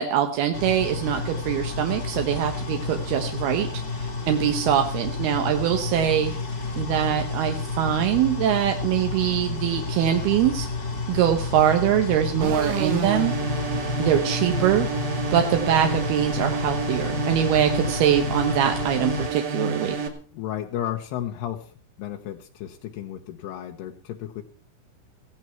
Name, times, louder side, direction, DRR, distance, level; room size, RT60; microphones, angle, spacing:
voice 1, 0.0-6.3 6.8-10.7 11.1-13.3 14.0-14.9 15.3-20.0, right 10 dB, 70° right, 5 dB, 2.5 m, -23 dB
sound 1, 0.5-19.3, left 3 dB, 35° left, 1.5 m, -31 dB
sound 2, 12.4-20.1, right 3 dB, 50° right, 3.1 m, -29 dB
voice 2, 20.3-21.7 22.0-24.4, left 11 dB, 75° left, 3 dB, 2.5 m, -33 dB
17.0 x 14.5 x 4.5 m, 0.41 s
omnidirectional pair, 5.9 m